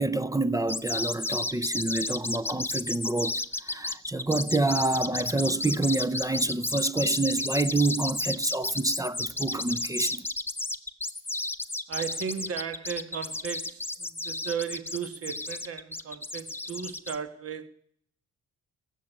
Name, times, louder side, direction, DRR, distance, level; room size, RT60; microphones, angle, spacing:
voice 1, 0.0-10.2, right 2 dB, 10° right, 0.5 m, -27 dB
sound 1, 0.7-17.2, left 2 dB, 5° left, 0.8 m, -32 dB
voice 2, 11.9-17.7, right 7 dB, 50° right, 1.4 m, -35 dB
16.0 x 6.8 x 10.0 m
cardioid pair, 90°, 30 cm